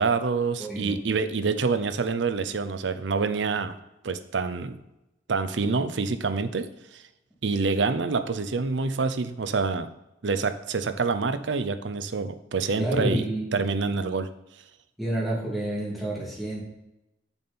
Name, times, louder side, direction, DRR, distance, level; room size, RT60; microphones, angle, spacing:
voice 1, 0.0-3.8 4.0-4.8 5.3-6.7 6.9-7.0 7.4-9.9 10.2-13.2 13.5-14.3, right 4 dB, 70° right, 10 dB, 0.6 m, -26 dB
voice 2, 0.6-1.0 12.8-13.5 15.0-16.6, right 1 dB, ahead, -6 dB, 2.6 m, -29 dB
7.1 x 6.9 x 4.2 m, 0.93 s
head